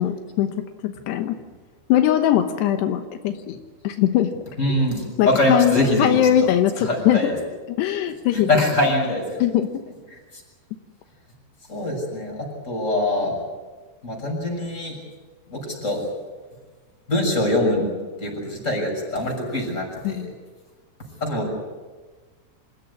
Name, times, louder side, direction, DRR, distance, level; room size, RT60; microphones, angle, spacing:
voice 1, 0.0-1.3 1.9-3.6 3.8-4.3 5.2-7.2 7.8-8.5 9.4-9.7 20.0-20.3, left 11 dB, 85° left, 7 dB, 3.2 m, -21 dB
voice 2, 4.6-6.2 6.8-7.4 8.3-9.4 10.1-10.2 11.7-13.3 14.0-15.0 15.5-16.0 17.1-17.9 18.2-20.2 21.2-21.5, left 1 dB, 15° left, 0 dB, 7.0 m, -23 dB
27.0 x 16.0 x 9.7 m, 1.3 s
omnidirectional pair, 4.8 m